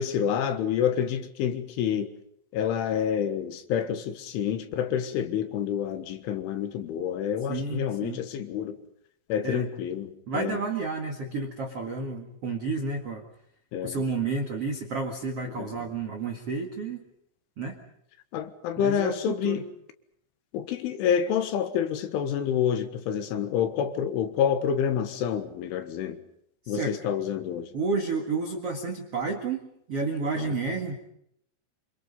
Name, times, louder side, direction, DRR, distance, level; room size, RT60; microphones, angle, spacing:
voice 1, 0.0-2.1 2.5-8.8 9.3-10.6 13.7-14.0 15.5-15.9 18.3-19.6 20.5-26.2 26.7-27.7 30.4-30.8, left 8 dB, 75° left, 3.8 m, -28 dB
voice 2, 7.5-8.2 9.4-9.6 10.3-13.2 13.8-17.1 17.6-17.8 18.8-19.6 26.6-27.0 27.7-30.9, right 4 dB, 60° right, 1.5 m, -31 dB
26.5 x 26.5 x 5.4 m
omnidirectional pair, 6.0 m